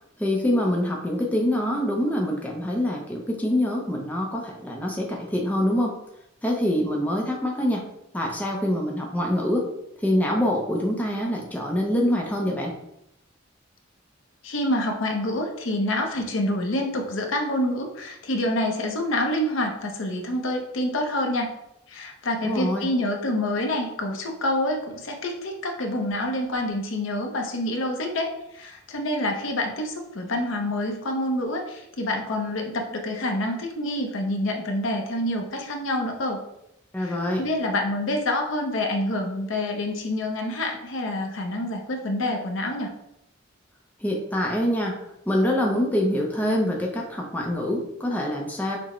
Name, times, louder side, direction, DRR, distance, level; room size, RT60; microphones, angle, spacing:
voice 1, 0.2-6.0 6.4-7.8 8.1-9.6 10.0-12.7 22.4-22.9 36.9-37.4 44.0-45.0 45.3-48.8, left 1 dB, 10° left, -1 dB, 0.5 m, -25 dB
voice 2, 14.4-21.5 21.9-36.4 37.0-42.9, left 1 dB, 70° left, 3 dB, 0.6 m, -27 dB
5.9 x 2.1 x 3.0 m, 0.82 s
head